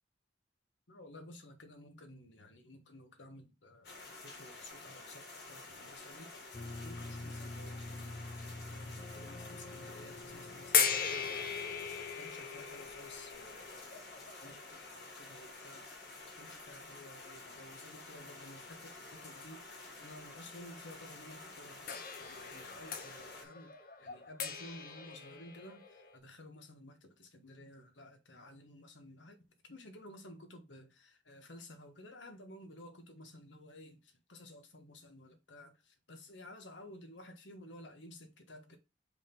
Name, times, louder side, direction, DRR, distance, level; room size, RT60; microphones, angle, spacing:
voice 1, 0.9-13.7 14.4-15.9 16.4-38.8, left 1 dB, 85° left, 1.4 m, -54 dB
sound 1, 3.8-23.4, left 3 dB, 65° left, 2.2 m, -50 dB
sound 2, 6.5-12.2, left 2 dB, 30° left, 0.3 m, -47 dB
sound 3, 10.7-15.8 16.6-16.7 21.9-26.2, left 7 dB, 50° left, 0.8 m, -38 dB
5.2 x 3.6 x 5.3 m
head